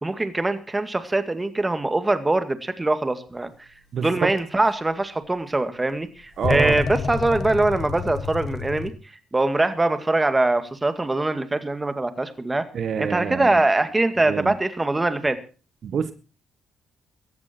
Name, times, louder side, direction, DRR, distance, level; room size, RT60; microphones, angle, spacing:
voice 1, 0.0-3.5 4.0-8.9 9.3-12.6 13.0-15.4, right 2 dB, 15° right, 10 dB, 2.0 m, -23 dB
voice 2, 3.9-4.3 6.4-6.8 12.7-13.6 14.2-14.5 15.8-16.1, right 7 dB, 60° right, 11 dB, 1.5 m, -26 dB
sound 1, 4.4-4.5 6.4-8.9, left 5 dB, 60° left, 1.9 m, -28 dB
17.5 x 14.0 x 4.5 m, 0.35 s
cardioid pair, 90°, 0 cm